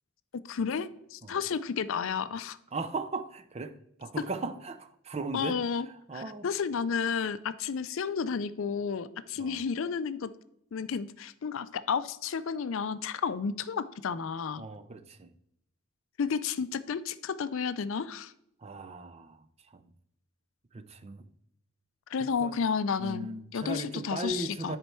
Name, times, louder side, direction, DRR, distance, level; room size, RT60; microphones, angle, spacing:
voice 1, 0.5-2.6 5.3-5.9 6.1-10.3 10.7-14.6 16.2-18.3 22.1-23.3 23.5-24.8, left 6 dB, 60° left, 0.4 m, -32 dB
voice 2, 2.7-6.5 9.4-9.6 14.6-15.3 18.6-19.8 20.7-21.3 22.2-22.6 23.0-24.8, right 3 dB, 30° right, 0.5 m, -38 dB
9.9 x 4.4 x 4.4 m
head